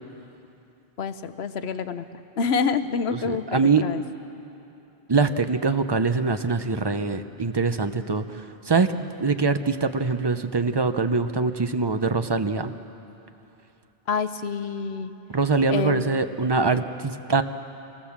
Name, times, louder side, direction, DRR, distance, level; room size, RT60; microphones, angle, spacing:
voice 1, 1.0-2.1 2.4-4.0 14.1-15.1 15.7-16.1, left 5 dB, 75° left, 10 dB, 1.1 m, -27 dB
voice 2, 3.2-3.8 5.1-12.7 15.3-17.4, right 4 dB, 25° right, 9 dB, 0.7 m, -23 dB
25.0 x 18.5 x 7.3 m, 2.8 s
omnidirectional pair, 1.1 m